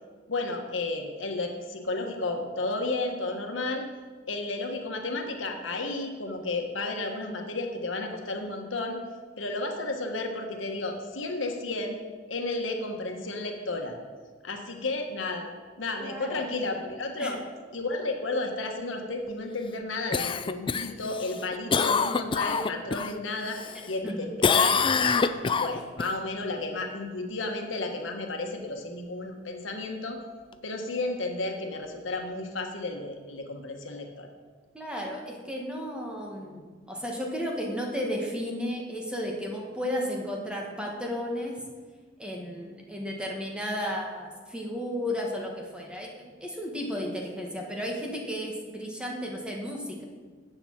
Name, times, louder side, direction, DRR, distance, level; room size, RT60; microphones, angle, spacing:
voice 1, 0.3-3.9 4.3-9.0 9.4-12.0 12.3-13.9 14.4-15.5 15.8-17.4 17.7-25.2 25.6-30.2 30.6-34.3, left 2 dB, 85° left, 3 dB, 1.3 m, -32 dB
voice 2, 16.0-16.4 17.2-17.3 24.0-24.3 34.7-41.6 42.2-50.0, equal, 5° right, -1 dB, 1.4 m, -33 dB
Cough, 20.1-23.1 23.5-24.1 24.4-26.1 30.5-30.6, left 5 dB, 25° left, 0.3 m, -25 dB
7.8 x 7.0 x 7.3 m, 1.5 s
head